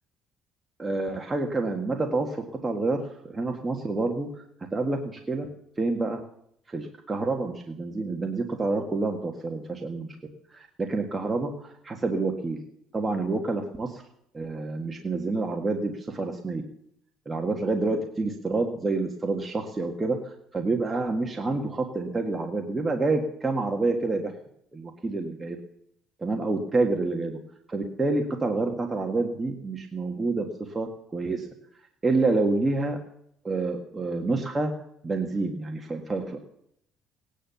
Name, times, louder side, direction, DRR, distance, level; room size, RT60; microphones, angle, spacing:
voice 1, 0.8-4.4 4.7-5.5 5.8-6.2 6.7-10.2 10.5-12.6 12.9-14.0 14.3-16.6 17.3-24.3 24.7-25.6 26.2-27.4 27.7-31.5 32.0-33.0 33.4-34.7 35.0-36.4, right 3 dB, 20° right, 2 dB, 1.7 m, -28 dB
18.0 x 10.0 x 7.0 m, 0.72 s
cardioid pair, 125°, 0 cm